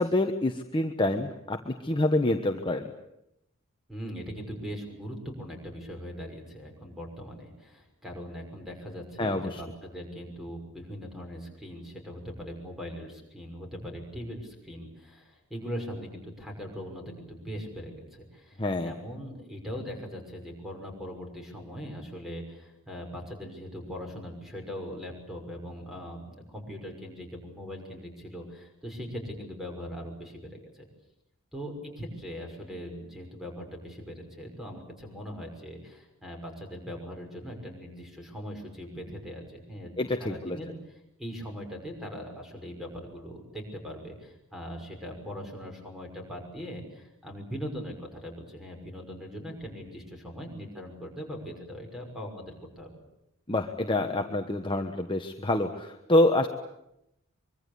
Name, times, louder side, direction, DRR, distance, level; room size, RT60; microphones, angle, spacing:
voice 1, 0.0-2.9 9.2-9.6 18.6-18.9 40.0-40.6 53.5-56.5, left 1 dB, 25° left, 4 dB, 1.2 m, -26 dB
voice 2, 3.9-30.8 31.5-39.9 40.2-40.7 41.2-52.9, equal, ahead, 2 dB, 6.0 m, -40 dB
24.5 x 23.5 x 8.5 m, 0.84 s
head